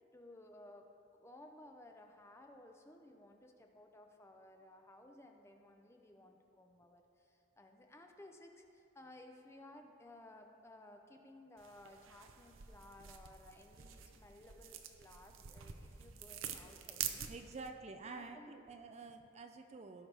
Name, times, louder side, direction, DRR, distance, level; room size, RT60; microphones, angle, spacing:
voice 1, 0.1-0.9 1.1-17.3 18.0-18.6, left 1 dB, 15° left, 4 dB, 0.6 m, -58 dB
sound 1, 11.6-17.7, right 9 dB, 80° right, 0.6 m, -47 dB
voice 2, 17.3-20.1, right 4 dB, 30° right, 6 dB, 0.3 m, -49 dB
17.0 x 5.7 x 3.4 m, 2.6 s
head